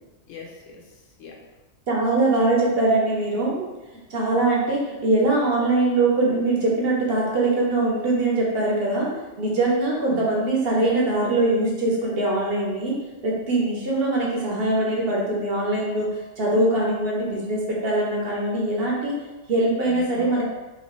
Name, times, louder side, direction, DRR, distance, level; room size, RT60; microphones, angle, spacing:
voice 1, 0.3-1.4 9.9-10.3 19.8-20.4, left 6 dB, 90° left, -1 dB, 1.1 m, -41 dB
voice 2, 1.9-3.6 4.1-9.1 9.4-12.9 13.2-19.2 19.5-20.4, right 2 dB, 55° right, -3 dB, 0.9 m, -22 dB
2.9 x 2.7 x 3.0 m, 1.1 s
omnidirectional pair, 1.3 m